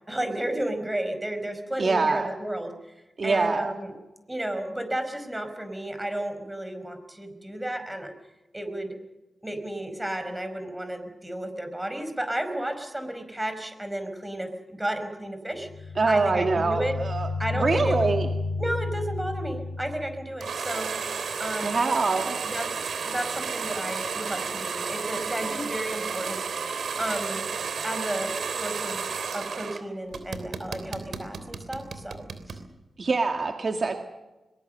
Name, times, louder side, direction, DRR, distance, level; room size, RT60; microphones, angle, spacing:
voice 1, 0.1-2.7 3.2-3.9 4.3-8.1 8.5-9.0 9.4-16.9 17.4-18.1 18.6-21.0 21.4-21.8 22.5-26.4 27.0-27.5 27.8-29.0 29.3-32.6, right 1 dB, 15° right, 7 dB, 5.1 m, -32 dB
voice 2, 1.8-2.3 3.2-3.7 16.0-18.3 21.6-22.4 33.0-33.9, right 4 dB, 50° right, 4 dB, 2.0 m, -25 dB
sound 1, 15.6-20.3, left 3 dB, 55° left, 4.3 m, -31 dB
sound 2, 20.4-29.8 30.1-32.6, right 5 dB, 80° right, 3.1 m, -32 dB
22.5 x 21.0 x 6.8 m, 1.1 s
cardioid pair, 75°, 0 cm